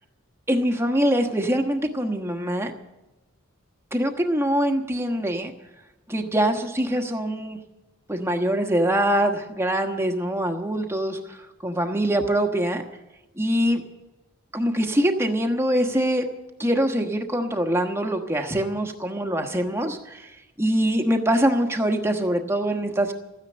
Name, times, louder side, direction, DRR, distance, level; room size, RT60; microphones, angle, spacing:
voice 1, 0.5-2.7 3.9-5.5 6.1-7.6 8.1-11.4 11.6-12.8 13.4-13.8 14.5-16.3 16.6-20.3 20.6-23.1, right 1 dB, 10° right, 4 dB, 1.2 m, -23 dB
14.0 x 9.7 x 8.7 m, 1.1 s
head